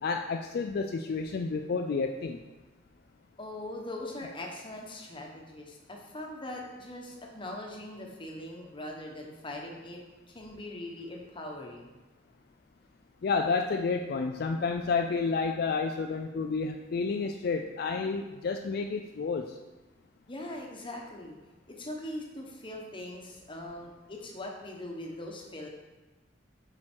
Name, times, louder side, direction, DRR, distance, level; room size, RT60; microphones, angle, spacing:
voice 1, 0.0-2.4 13.2-19.6, left 4 dB, 60° left, 4 dB, 0.4 m, -30 dB
voice 2, 3.4-10.0 10.3-12.0 20.3-21.4 21.7-25.7, left 1 dB, 30° left, 0 dB, 1.1 m, -41 dB
7.5 x 4.5 x 4.5 m, 1.1 s
head